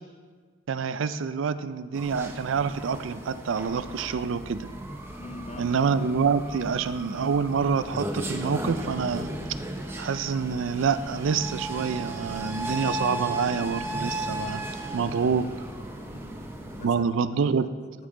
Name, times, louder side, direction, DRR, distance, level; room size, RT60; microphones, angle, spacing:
voice 1, 0.7-4.7 5.6-9.3 10.0-14.6 14.9-15.5 16.8-17.7, right 6 dB, 65° right, 13 dB, 0.4 m, -27 dB
sound 1, 1.9-16.9, right 1 dB, 10° right, 0.7 m, -35 dB
sound 2, 3.5-13.8, equal, 85° left, 2.6 m, -53 dB
voice 2, 5.2-5.8 16.1-17.1 17.6-18.1, left 1 dB, 35° left, 8 dB, 0.6 m, -45 dB
14.5 x 5.5 x 3.8 m, 1.5 s
head